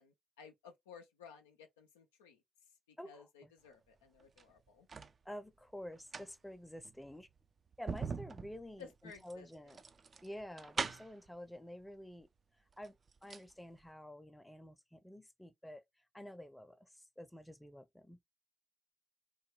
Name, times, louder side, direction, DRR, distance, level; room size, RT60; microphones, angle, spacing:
voice 1, 0.0-2.4 2.9-4.9 8.8-9.8, left 6 dB, 90° left, 0.4 m, -57 dB
voice 2, 3.0-3.5 5.3-7.3 7.8-9.8 10.2-12.3 12.8-13.0 13.2-15.8 16.1-18.2, equal, 10° left, 0.6 m, -50 dB
sound 1, 4.2-5.2 5.9-11.3 12.2-12.3 12.7-13.5 13.8-13.9, right 5 dB, 45° right, 0.4 m, -43 dB
3.1 x 2.2 x 3.0 m
hypercardioid pair, 40°, 0 cm